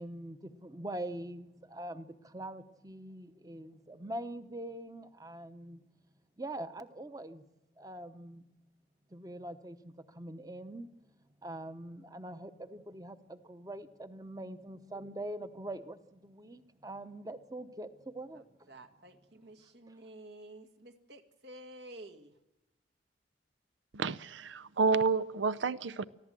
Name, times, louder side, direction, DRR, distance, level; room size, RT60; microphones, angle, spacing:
voice 1, 0.0-5.8 6.4-7.4 7.8-8.4 9.1-10.9 11.4-18.6, right 1 dB, 20° right, 10 dB, 0.9 m, -43 dB
voice 2, 18.3-22.3, right 1 dB, 70° right, 7 dB, 1.9 m, -51 dB
voice 3, 23.9-26.0, right 4 dB, 90° right, 18 dB, 0.6 m, -30 dB
25.0 x 15.5 x 7.6 m, 0.96 s
head